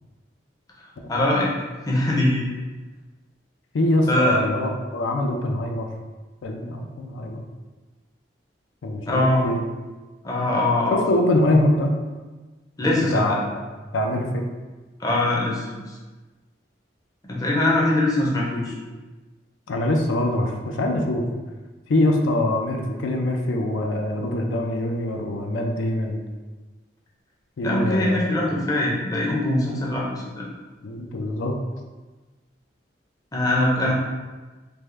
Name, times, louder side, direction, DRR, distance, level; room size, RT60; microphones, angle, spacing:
voice 1, 1.1-1.5 1.9-2.4 4.1-4.4 9.1-9.4 10.2-11.0 12.8-13.4 15.0-16.0 17.2-18.7 27.6-30.4 33.3-33.9, left 1 dB, 20° left, -3 dB, 0.5 m, -22 dB
voice 2, 3.7-5.9 6.4-7.4 8.8-9.6 10.9-12.0 13.0-13.5 13.9-14.4 19.7-21.3 21.9-26.2 27.6-28.4 30.8-31.5, left 1 dB, 90° left, 2 dB, 0.4 m, -23 dB
3.4 x 2.0 x 3.2 m, 1.3 s
head